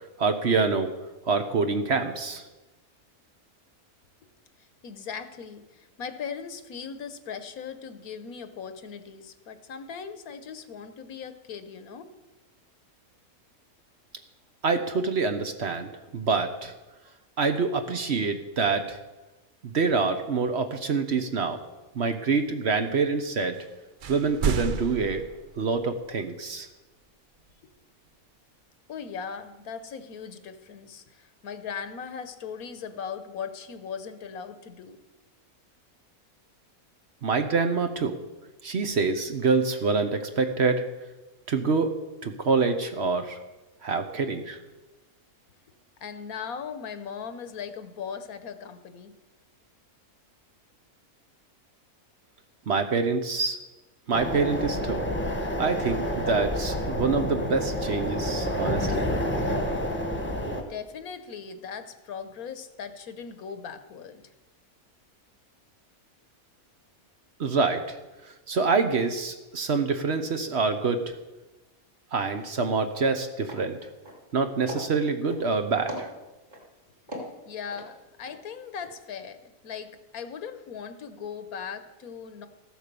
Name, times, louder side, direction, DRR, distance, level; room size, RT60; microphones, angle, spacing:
voice 1, 0.2-0.9 1.3-2.4 14.6-16.7 17.4-19.0 19.6-21.6 21.9-23.6 24.1-25.3 25.6-26.7 37.2-38.2 38.6-40.8 41.5-41.9 42.2-43.4 43.8-44.6 52.7-53.6 54.1-55.0 55.6-59.1 67.4-68.0 68.5-71.1 72.1-73.8 74.3-76.1, right 4 dB, 50° right, 7 dB, 1.1 m, -26 dB
voice 2, 4.6-12.1 27.6-27.7 28.9-35.0 46.0-49.1 60.7-64.3 77.1-77.2 77.5-82.5, left 6 dB, 75° left, 10 dB, 1.4 m, -39 dB
sound 1, 23.5-23.7 24.0-26.1, right 5 dB, 70° right, 0.4 m, -31 dB
sound 2, 54.1-60.6, equal, 10° left, 1.3 m, -29 dB
sound 3, 72.4-72.5 72.8-73.1 73.4-73.7 74.0-74.4 74.7-75.5 75.9-76.6 77.1-78.4 78.7-78.9, equal, 35° right, 3.2 m, -39 dB
14.5 x 7.9 x 6.8 m, 1.1 s
omnidirectional pair, 1.5 m